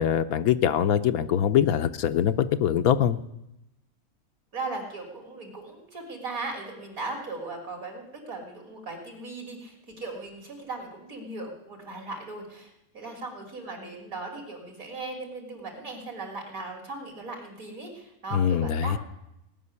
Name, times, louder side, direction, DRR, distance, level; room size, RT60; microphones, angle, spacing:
voice 1, 0.0-3.2 18.3-19.0, left 9 dB, 85° left, 9 dB, 1.2 m, -23 dB
voice 2, 4.5-19.0, right 3 dB, 70° right, 2 dB, 3.7 m, -38 dB
18.5 x 6.3 x 9.6 m, 0.85 s
omnidirectional pair, 1.5 m